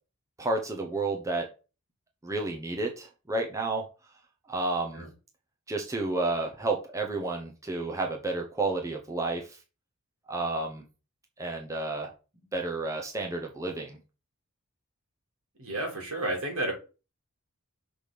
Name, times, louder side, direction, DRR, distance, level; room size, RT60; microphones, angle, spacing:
voice 1, 0.4-1.5 2.2-3.8 4.5-5.0 5.7-9.6 10.3-10.8 11.4-12.1 12.5-14.0, right 2 dB, 15° right, 1 dB, 0.8 m, -31 dB
voice 2, 15.6-16.7, right 1 dB, 75° right, 2 dB, 2.4 m, -31 dB
6.0 x 3.4 x 5.1 m, 0.33 s
head